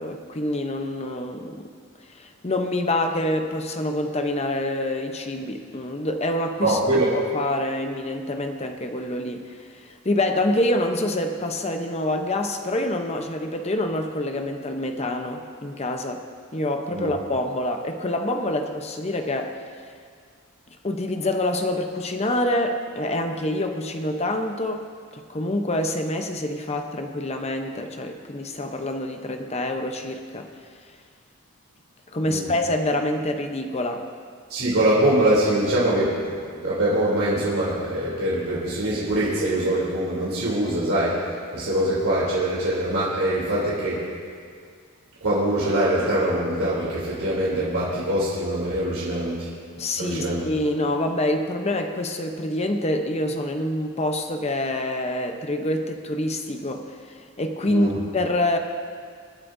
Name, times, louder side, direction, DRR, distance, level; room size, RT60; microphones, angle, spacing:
voice 1, 0.0-1.7 2.1-16.2 16.5-19.6 20.8-24.8 25.1-30.5 32.1-34.1 49.8-58.6, left 1 dB, 30° left, 5 dB, 0.8 m, -26 dB
voice 2, 6.6-7.1 16.9-17.1 32.2-32.5 34.5-41.2 41.5-44.0 45.2-49.5 50.0-50.4 57.7-57.9, right 1 dB, 70° right, -8 dB, 3.1 m, -23 dB
26.0 x 9.8 x 2.7 m, 2.1 s
head